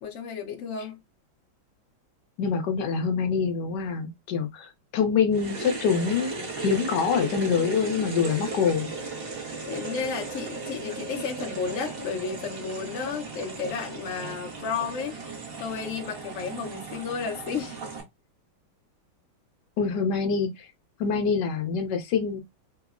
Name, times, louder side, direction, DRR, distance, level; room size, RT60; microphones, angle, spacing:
voice 1, 0.0-1.0 9.7-15.2 15.6-17.8, left 6 dB, 85° left, 0.6 m, -33 dB
voice 2, 2.4-8.9 19.8-20.7 21.0-22.4, left 6 dB, 65° left, 1.1 m, -25 dB
sound 1, 5.3-18.0, right 3 dB, 60° right, 0.6 m, -36 dB
3.5 x 2.0 x 2.4 m
omnidirectional pair, 2.2 m